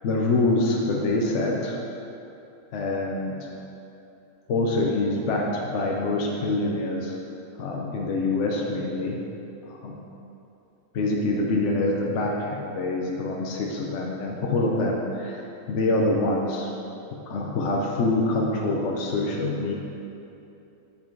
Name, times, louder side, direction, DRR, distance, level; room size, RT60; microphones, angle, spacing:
voice 1, 0.0-1.8 2.7-3.5 4.5-7.2 7.6-9.2 9.7-10.0 10.9-15.4 15.7-16.7 17.3-19.7, left 2 dB, 60° left, -1 dB, 0.9 m, -25 dB
7.1 x 5.4 x 4.6 m, 2.8 s
omnidirectional pair, 1.6 m